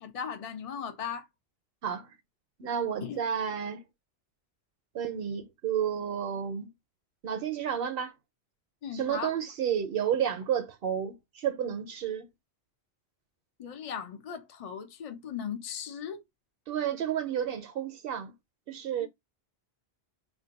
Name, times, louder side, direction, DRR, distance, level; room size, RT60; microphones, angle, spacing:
voice 1, 0.0-1.3 3.0-3.2 8.8-9.3 13.6-16.2 19.0-19.1, left 7 dB, 50° left, 0.4 m, -37 dB
voice 2, 1.8-2.1 2.6-3.8 4.9-6.7 7.2-8.1 8.9-12.3 16.7-18.3 18.7-19.1, right 9 dB, 65° right, 0.7 m, -31 dB
2.5 x 2.2 x 3.9 m
omnidirectional pair, 1.1 m